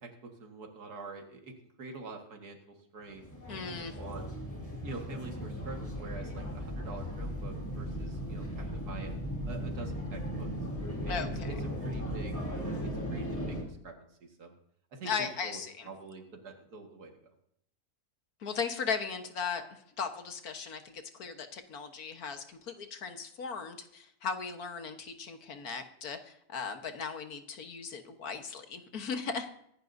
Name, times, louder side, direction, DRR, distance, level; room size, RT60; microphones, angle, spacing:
voice 1, 0.0-3.2 4.0-4.3 4.8-9.2 9.5-10.5 11.0-11.6 11.8-12.4 12.7-14.5 14.9-17.3, right 3 dB, 90° right, 3 dB, 2.2 m, -46 dB
sound 1, 3.1-13.6, equal, 10° left, 2.9 m, -37 dB
voice 2, 3.5-4.0 11.1-11.6 15.0-15.9 18.4-29.5, left 5 dB, 75° left, 6 dB, 1.7 m, -37 dB
24.0 x 11.0 x 2.7 m, 0.72 s
omnidirectional pair, 1.6 m